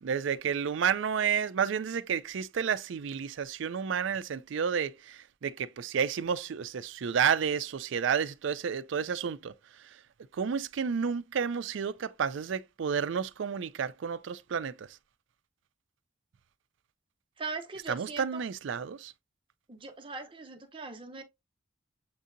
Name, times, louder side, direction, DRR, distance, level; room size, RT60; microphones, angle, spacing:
voice 1, 0.0-9.5 10.3-14.9 17.9-19.1, right 7 dB, 65° right, 0.4 m, -31 dB
voice 2, 17.4-18.4 19.7-21.2, right 4 dB, 25° right, 0.7 m, -40 dB
7.3 x 2.7 x 2.5 m
head